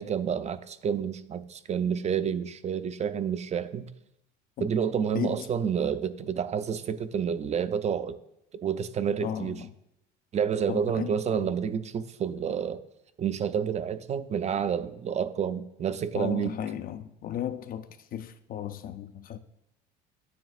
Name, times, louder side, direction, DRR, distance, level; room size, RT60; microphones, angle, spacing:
voice 1, 0.0-3.9 4.6-8.1 8.6-9.6 10.3-12.8 13.2-16.5, right 7 dB, 35° right, 0.5 m, -29 dB
voice 2, 5.1-5.5 9.2-9.7 10.7-11.5 16.1-19.4, left 10 dB, 45° left, 0.4 m, -35 dB
9.3 x 6.9 x 2.4 m
supercardioid pair, 95°, 20 cm